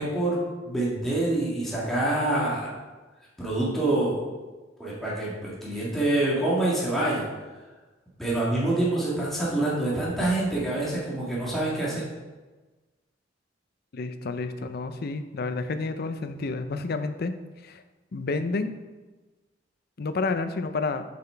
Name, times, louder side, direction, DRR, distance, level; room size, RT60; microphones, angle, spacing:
voice 1, 0.0-2.7 3.4-4.2 4.8-7.2 8.2-12.0, right 2 dB, ahead, -7 dB, 1.7 m, -26 dB
voice 2, 13.9-17.3 17.6-17.8 18.1-18.8 20.0-21.0, left 3 dB, 55° left, 10 dB, 0.5 m, -30 dB
7.3 x 5.9 x 4.4 m, 1.2 s
head